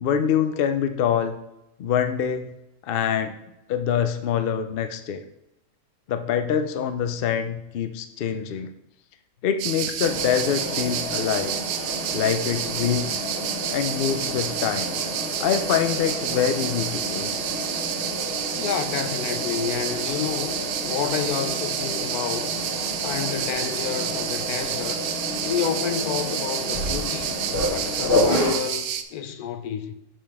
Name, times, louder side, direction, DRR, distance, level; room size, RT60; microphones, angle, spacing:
voice 1, 0.0-1.4 1.8-2.4 2.9-3.4 3.7-5.2 6.1-8.7 9.4-11.5 12.1-13.2 13.7-14.9 15.4-17.3, left 8 dB, 65° left, 0.5 m, -25 dB
sound 1, 9.6-29.0, right 9 dB, 80° right, 1.0 m, -30 dB
Mechanisms, 10.0-28.5, left 1 dB, 40° left, 1.5 m, -30 dB
voice 2, 18.6-22.5 23.0-25.0 25.4-27.4 27.7-29.9, left 8 dB, 80° left, 1.1 m, -30 dB
7.2 x 5.1 x 3.5 m
omnidirectional pair, 1.6 m